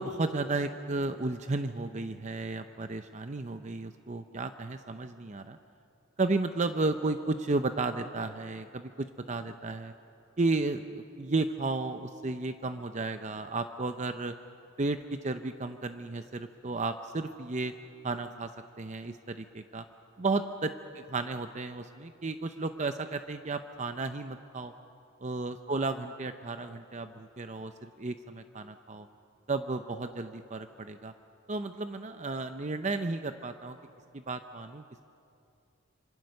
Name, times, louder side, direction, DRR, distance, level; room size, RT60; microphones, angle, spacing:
voice 1, 0.0-5.6 6.2-9.9 10.4-14.4 14.8-17.7 18.0-18.5 18.8-19.8 20.2-20.7 21.1-24.7 25.2-29.1 29.5-31.1 31.5-33.8 34.1-34.8, right 3 dB, 35° right, 8 dB, 0.6 m, -33 dB
26.0 x 24.5 x 6.6 m, 2.6 s
head